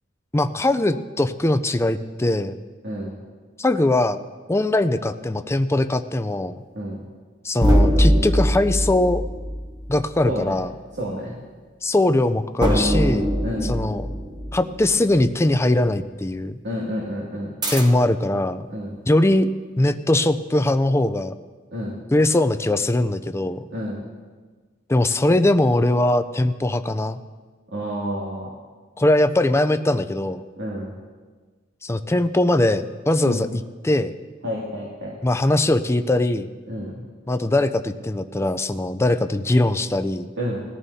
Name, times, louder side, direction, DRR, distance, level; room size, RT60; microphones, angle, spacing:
voice 1, 0.3-2.5 3.6-4.2 4.5-6.6 7.4-9.2 9.9-10.7 11.8-13.3 13.6-14.1 14.5-16.6 17.7-18.7 19.1-19.5 19.8-21.3 22.1-23.6 24.9-27.2 29.0-30.4 31.8-34.1 35.2-36.5 37.3-40.3, left 1 dB, 15° left, 10 dB, 0.5 m, -21 dB
voice 2, 2.8-3.2 6.7-7.0 10.2-10.6 11.0-11.4 13.4-13.7 16.6-17.5 18.7-18.9 21.7-22.0 23.7-24.0 27.7-28.5 30.6-30.9 33.2-33.4 34.4-35.2 36.7-37.0 40.4-40.6, equal, 65° right, -5 dB, 2.5 m, -29 dB
sound 1, 7.6-10.4 12.6-15.3 17.6-18.2, equal, 20° right, 1.2 m, -22 dB
20.5 x 14.0 x 2.8 m, 1.4 s
head